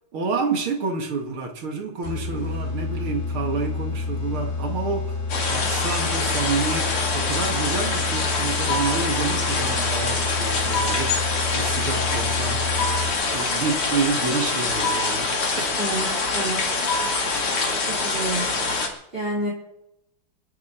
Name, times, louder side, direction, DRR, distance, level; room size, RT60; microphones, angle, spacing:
voice 1, 0.1-12.6 13.3-15.7, right 4 dB, 80° right, 3 dB, 2.7 m, -29 dB
sound 1, 2.0-13.4, left 4 dB, 30° left, 4.0 m, -29 dB
sound 2, 5.3-18.9, left 3 dB, 85° left, 3.5 m, -25 dB
sound 3, 8.7-9.2 10.7-11.2 12.8-13.3 14.8-15.3 16.9-17.4, left 1 dB, 50° left, 5.2 m, -29 dB
voice 2, 15.8-16.6 18.0-18.9 19.1-19.5, right 2 dB, 25° right, -5 dB, 5.4 m, -29 dB
29.5 x 10.5 x 4.4 m, 0.86 s
omnidirectional pair, 2.3 m